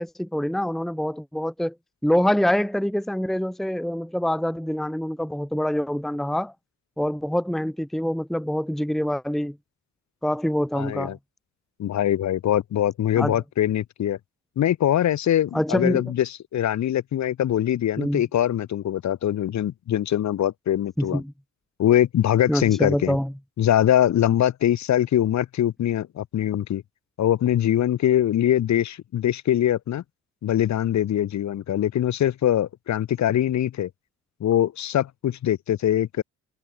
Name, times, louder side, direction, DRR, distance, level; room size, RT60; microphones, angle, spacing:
voice 1, 0.0-1.7 2.0-6.5 7.0-9.6 10.2-11.2 13.2-13.4 15.5-16.0 18.0-18.2 21.0-21.3 22.5-23.3, equal, ahead, 1.3 m, -25 dB
voice 2, 10.7-11.2 11.8-14.2 14.6-21.2 21.8-23.2 23.6-26.8 27.2-30.0 30.4-33.9 34.4-36.2, left 11 dB, 55° left, 4.1 m, -23 dB
cardioid pair, 145°, 33 cm